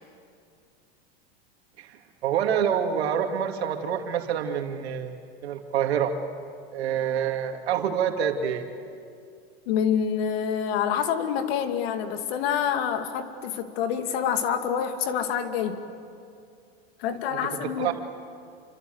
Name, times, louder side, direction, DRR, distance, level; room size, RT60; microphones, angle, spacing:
voice 1, 1.8-6.1 6.7-8.7 17.4-17.9, right 8 dB, 85° right, 4 dB, 2.7 m, -27 dB
voice 2, 9.7-15.9 17.0-18.0, left 8 dB, 70° left, 7 dB, 2.6 m, -27 dB
28.5 x 25.5 x 8.1 m, 2.4 s
supercardioid pair, 115°, 31 cm